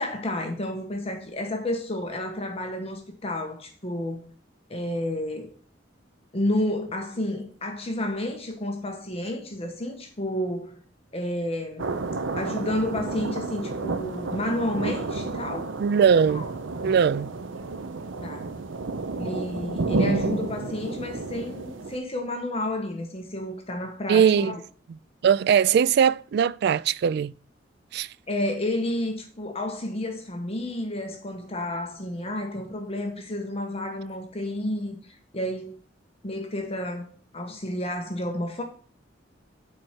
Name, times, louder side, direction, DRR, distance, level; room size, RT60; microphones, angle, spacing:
voice 1, 0.0-4.2 4.7-5.5 6.3-10.8 11.1-11.9 12.4-15.7 16.3-16.5 18.2-18.5 19.1-24.6 28.3-35.8 36.2-38.6, left 1 dB, 30° left, 1.2 m, -31 dB
sound 1, 11.8-22.0, right 3 dB, 85° right, 0.7 m, -31 dB
voice 2, 15.8-16.4 16.8-17.3 24.1-24.6 25.2-27.3 27.9-28.1, right 7 dB, 60° right, 0.3 m, -20 dB
7.8 x 4.5 x 5.8 m
head